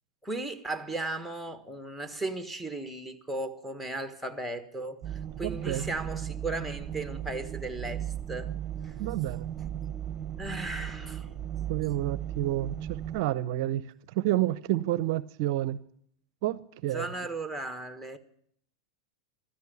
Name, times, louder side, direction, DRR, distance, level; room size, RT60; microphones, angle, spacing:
voice 1, 0.2-8.5 8.8-8.9 10.4-11.3 16.9-18.2, right 2 dB, ahead, 1.5 m, -36 dB
sound 1, 5.0-13.2, right 10 dB, 25° right, 1.1 m, -36 dB
voice 2, 5.4-5.9 9.0-9.5 11.7-13.8 14.1-15.8 16.4-17.1, right 14 dB, 55° right, 0.6 m, -29 dB
16.0 x 13.0 x 6.9 m
hypercardioid pair, 95°, 3 cm